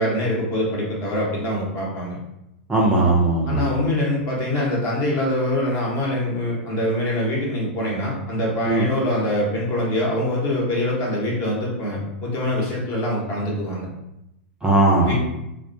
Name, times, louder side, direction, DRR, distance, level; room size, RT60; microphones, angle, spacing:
voice 1, 0.0-2.2 3.5-13.9 15.1-15.2, left 1 dB, 45° left, -4 dB, 0.9 m, -24 dB
voice 2, 2.7-3.7 8.7-8.9 14.6-15.1, right 2 dB, 10° right, -2 dB, 0.4 m, -18 dB
2.3 x 2.2 x 2.5 m, 0.87 s
hypercardioid pair, 110°, 6 cm